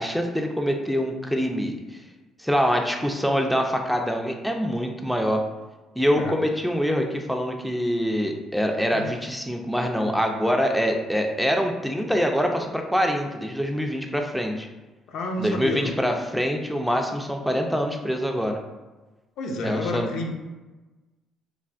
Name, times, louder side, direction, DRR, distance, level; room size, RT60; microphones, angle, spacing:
voice 1, 0.0-2.0 2.4-5.4 6.0-14.7 15.4-18.6 19.6-20.1, equal, ahead, 3 dB, 0.4 m, -25 dB
voice 2, 15.1-15.9 19.4-20.3, left 2 dB, 70° left, 1 dB, 0.5 m, -30 dB
3.3 x 2.3 x 2.4 m, 1.2 s
supercardioid pair, 75°, 0 cm